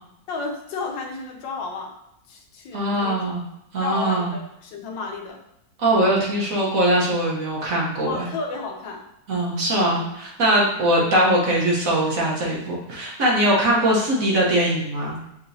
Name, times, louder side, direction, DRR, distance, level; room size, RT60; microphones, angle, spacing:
voice 1, 0.3-1.9 2.3-3.2 3.8-5.4 8.0-9.0, left 4 dB, 85° left, 1 dB, 1.5 m, -32 dB
voice 2, 2.7-3.4 3.7-4.3 5.8-8.3 9.3-15.2, right 1 dB, 55° right, -4 dB, 1.3 m, -21 dB
6.7 x 2.9 x 2.7 m, 0.83 s
omnidirectional pair, 2.0 m